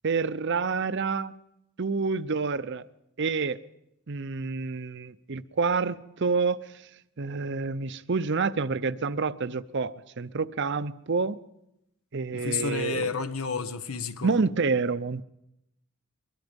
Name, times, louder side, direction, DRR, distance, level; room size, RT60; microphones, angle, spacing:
voice 1, 0.0-1.3 1.8-2.9 3.2-3.6 4.1-6.7 7.2-11.4 12.1-13.1 14.2-15.2, right 4 dB, 55° right, 0.7 m, -28 dB
voice 2, 12.3-14.3, left 5 dB, 90° left, 1.3 m, -31 dB
23.0 x 22.5 x 5.3 m
head